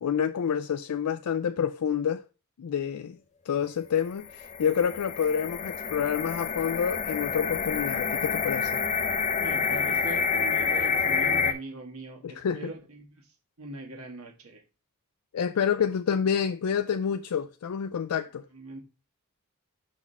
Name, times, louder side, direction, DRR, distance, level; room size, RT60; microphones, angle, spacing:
voice 1, 0.0-2.2 2.6-3.2 3.5-8.8 12.2-12.7 15.3-18.5, left 7 dB, 85° left, 0.4 m, -28 dB
sound 1, 4.1-11.5, left 5 dB, 30° left, 0.6 m, -28 dB
voice 2, 9.4-14.6 18.5-18.8, right 2 dB, 75° right, 1.6 m, -41 dB
6.0 x 4.1 x 5.4 m
head